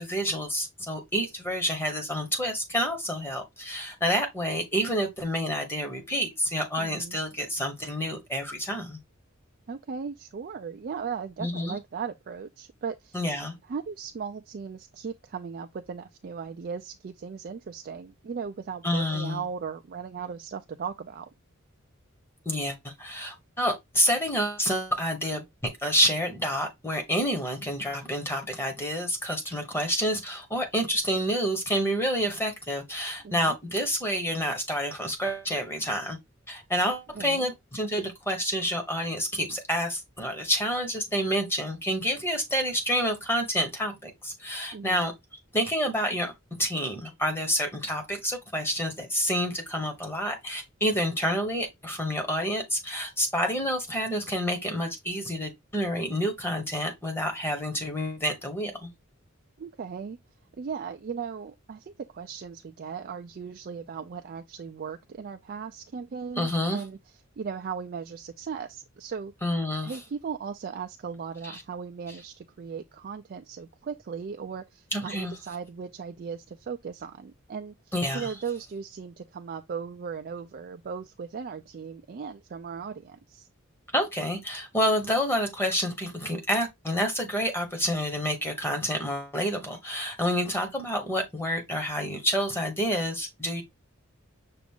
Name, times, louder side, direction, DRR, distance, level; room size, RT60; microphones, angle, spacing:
voice 1, 0.0-9.0 11.4-11.8 13.1-13.5 18.8-19.4 22.4-36.2 36.5-45.1 45.5-46.3 46.6-58.9 66.4-66.8 69.4-70.0 71.4-71.6 74.9-75.3 77.9-78.3 83.9-93.6, equal, 10° left, 1.1 m, -28 dB
voice 2, 6.8-7.2 9.7-13.2 13.7-21.3 33.2-33.6 37.2-37.5 44.7-45.1 59.6-60.2 60.6-67.0 67.4-69.3 69.8-77.7 78.1-83.5, right 6 dB, 45° right, 0.4 m, -37 dB
6.0 x 2.5 x 3.6 m
head